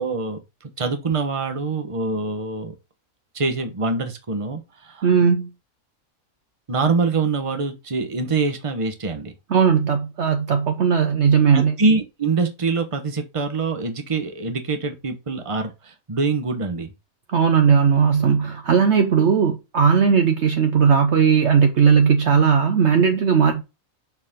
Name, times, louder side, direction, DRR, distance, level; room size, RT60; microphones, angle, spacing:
voice 1, 0.0-2.7 3.3-5.1 6.7-9.3 11.5-16.9, right 4 dB, 25° right, 1.1 m, -24 dB
voice 2, 5.0-5.5 9.5-11.8 17.3-23.6, right 6 dB, 60° right, 1.0 m, -17 dB
6.2 x 4.7 x 3.6 m
omnidirectional pair, 1.5 m